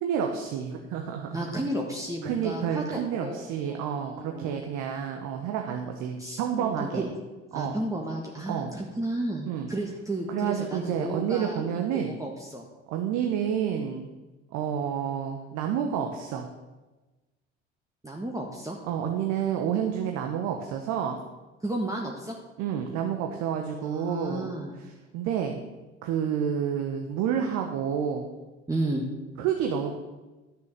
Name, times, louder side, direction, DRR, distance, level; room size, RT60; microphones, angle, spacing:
voice 1, 0.0-1.4 2.2-7.0 7.5-7.8 8.5-8.7 9.5-9.7 10.3-12.1 12.9-14.1 14.5-16.5 18.9-21.2 22.6-24.5 25.1-25.6 26.0-28.3 29.4-29.9, right 8 dB, 60° right, 3 dB, 1.2 m, -29 dB
voice 2, 1.3-4.5 6.2-7.1 7.5-11.6 12.1-12.7 18.0-18.8 21.6-22.4 23.8-24.7 28.7-29.1, right 1 dB, 10° right, -1 dB, 1.6 m, -33 dB
12.5 x 6.9 x 6.6 m, 1.2 s
figure-of-eight pair, 55°, 33 cm